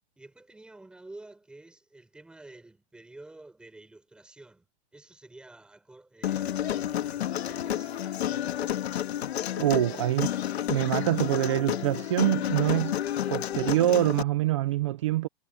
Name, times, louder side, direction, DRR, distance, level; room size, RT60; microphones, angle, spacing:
voice 1, 0.2-4.7 4.9-8.2 8.6-8.9 10.2-10.5, right 2 dB, 5° right, 5.9 m, -50 dB
Human voice, 6.2-14.2, left 11 dB, 75° left, 1.8 m, -30 dB
voice 2, 9.6-10.3 10.7-13.0 13.3-15.3, right 13 dB, 30° right, 0.5 m, -25 dB
supercardioid pair, 180°, 32 cm